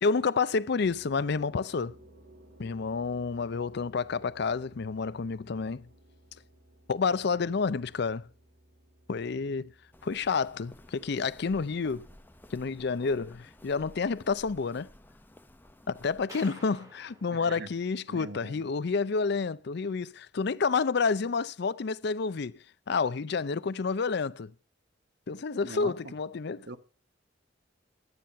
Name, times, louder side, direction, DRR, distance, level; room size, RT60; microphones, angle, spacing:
voice 1, 0.0-1.9 2.6-5.9 6.9-8.2 9.1-9.7 10.0-12.1 12.5-14.9 15.9-24.5 25.3-26.7, left 4 dB, 60° left, 0.5 m, -29 dB
sound 1, 0.8-14.3, right 1 dB, 90° right, 2.3 m, -59 dB
Walk footsteps, 9.9-16.3, left 1 dB, 10° left, 0.7 m, -54 dB
sound 2, 16.3-18.6, right 1 dB, 20° right, 2.6 m, -52 dB
voice 2, 17.3-17.7 18.1-18.6 25.6-25.9 26.6-26.8, right 3 dB, 65° right, 1.0 m, -41 dB
12.0 x 9.6 x 5.5 m
head